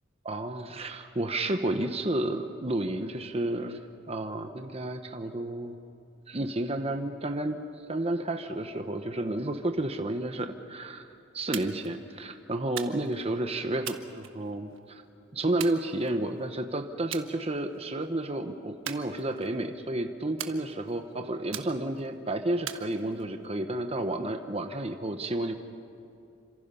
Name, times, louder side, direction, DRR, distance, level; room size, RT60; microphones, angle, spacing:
voice 1, 0.2-3.8 4.1-5.8 6.3-7.6 7.9-11.1 11.3-15.0 15.3-25.6, right 1 dB, 30° right, 6 dB, 1.0 m, -31 dB
sound 1, 11.5-11.9 12.8-13.2 13.9-14.8 15.6-16.4 17.1-17.3 17.7-18.1 18.9-19.6 20.4-21.0 21.5-22.1 22.7-23.5, right 10 dB, 80° right, 1.3 m, -40 dB
28.5 x 26.0 x 5.6 m, 2.7 s
head